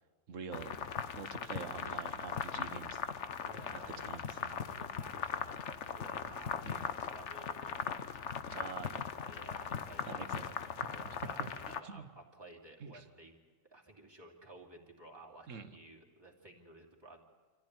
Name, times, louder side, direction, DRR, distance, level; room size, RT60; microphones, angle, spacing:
voice 1, 0.3-0.7 1.1-3.0 3.7-4.6 6.6-6.9 8.5-9.1 10.1-10.4 11.4-11.5 11.8-12.1 12.8-13.0 15.5-15.7, right 6 dB, 80° right, 9 dB, 1.6 m, -45 dB
sound 1, 0.5-11.8, left 7 dB, 65° left, 1.2 m, -39 dB
voice 2, 3.4-4.0 4.5-8.3 9.2-13.4 13.7-17.2, right 2 dB, 20° right, -1 dB, 2.8 m, -55 dB
26.0 x 15.0 x 9.5 m, 1.4 s
omnidirectional pair, 1.3 m